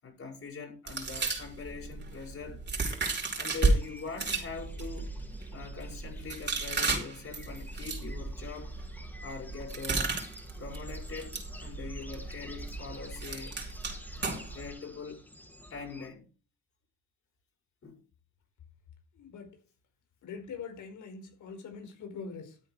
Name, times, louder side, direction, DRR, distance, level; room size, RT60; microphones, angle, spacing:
voice 1, 0.0-2.6 3.4-5.1 5.5-8.8 9.2-10.2 10.6-13.6 14.2-15.2 15.7-16.2 17.8-18.0, left 5 dB, 45° left, 6.3 m, -42 dB
sound 1, 0.9-3.8 4.1-14.7, right 3 dB, 35° right, 5.1 m, -34 dB
sound 2, 3.7-16.1, left 1 dB, 5° left, 4.1 m, -51 dB
voice 2, 19.1-19.6 20.2-22.6, left 5 dB, 75° left, 5.0 m, -43 dB
13.0 x 9.0 x 4.9 m
cardioid pair, 90°, 30 cm